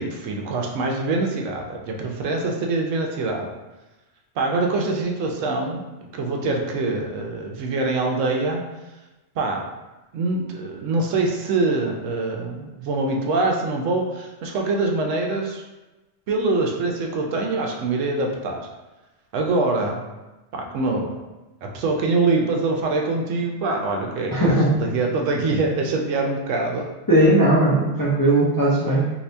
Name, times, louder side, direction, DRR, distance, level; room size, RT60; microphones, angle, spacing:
voice 1, 0.0-3.5 4.4-5.8 6.1-8.6 9.4-9.7 10.1-15.6 16.3-18.7 19.3-20.0 20.5-21.1 21.6-24.5 24.8-26.9, right 3 dB, 80° right, 1 dB, 0.9 m, -24 dB
voice 2, 24.3-24.7 27.1-29.1, right 1 dB, 30° left, -7 dB, 0.4 m, -18 dB
2.7 x 2.7 x 3.2 m, 1.1 s
omnidirectional pair, 1.3 m